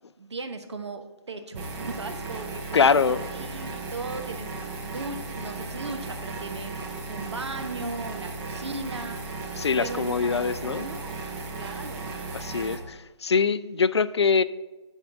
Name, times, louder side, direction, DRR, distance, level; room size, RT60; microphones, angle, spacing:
voice 1, 0.2-9.2 9.8-11.2 11.5-12.2, right 3 dB, 65° right, 7 dB, 1.0 m, -37 dB
sound 1, 1.5-12.8, right 3 dB, 10° right, 0.7 m, -36 dB
voice 2, 2.7-3.2 9.6-10.9 12.3-14.4, left 5 dB, 65° left, 16 dB, 0.4 m, -23 dB
9.9 x 3.6 x 5.9 m, 1.2 s
figure-of-eight pair, 150°, 15 cm